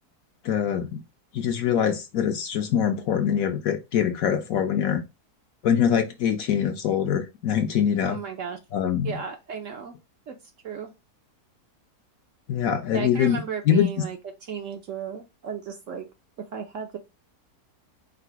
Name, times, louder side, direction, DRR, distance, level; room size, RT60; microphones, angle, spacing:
voice 1, 0.4-1.0 1.3-5.0 5.6-8.2 8.7-9.2 12.5-14.0, left 8 dB, 65° left, 1.0 m, -24 dB
voice 2, 8.1-8.6 9.0-10.0 10.3-10.4 10.6-10.9 12.9-14.2 14.5-16.1 16.5-17.0, right 7 dB, 60° right, 0.9 m, -34 dB
4.9 x 2.1 x 4.5 m
omnidirectional pair, 1.8 m